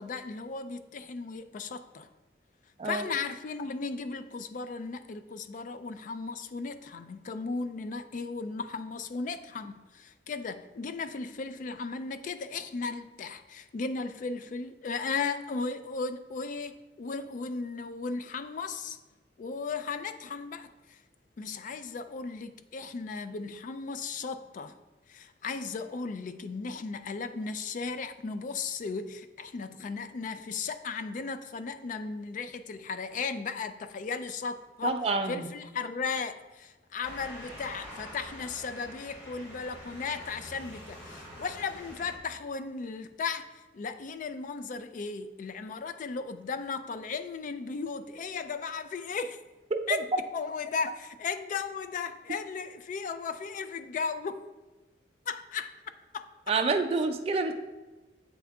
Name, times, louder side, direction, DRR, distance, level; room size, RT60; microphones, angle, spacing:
voice 1, 0.0-2.1 2.8-19.0 19.4-21.0 21.4-24.8 25.1-35.0 35.3-43.5 43.7-49.4 49.9-50.1 50.3-54.4 55.3-55.7 56.1-56.2, left 4 dB, 45° left, 11 dB, 0.3 m, -36 dB
voice 2, 34.8-35.5 49.7-49.8 56.5-57.5, right 3 dB, 35° right, 5 dB, 0.4 m, -28 dB
Motor vehicle (road) / Siren, 37.0-42.2, equal, 85° left, 1.7 m, -46 dB
7.8 x 3.6 x 3.4 m, 1.2 s
head